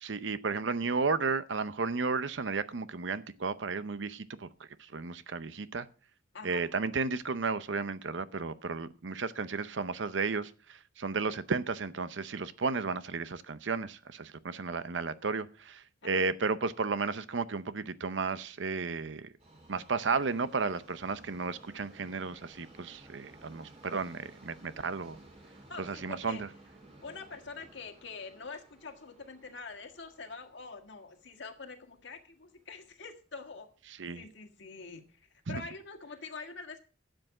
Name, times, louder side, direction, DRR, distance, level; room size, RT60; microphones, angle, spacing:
voice 1, 0.0-5.9 6.4-19.3 19.7-25.2 25.8-26.5 34.0-34.2 35.5-35.6, right 4 dB, 70° right, 14 dB, 0.7 m, -33 dB
voice 2, 6.3-6.7 16.0-16.2 25.7-26.4 27.0-33.7 34.1-36.8, left 4 dB, 70° left, 6 dB, 1.7 m, -45 dB
Subway metro underground, 19.4-33.5 33.8-33.9 34.8-34.9 35.1-35.2 35.9-36.0, right 1 dB, 35° right, 3.7 m, -57 dB
12.0 x 7.9 x 4.8 m, 0.38 s
head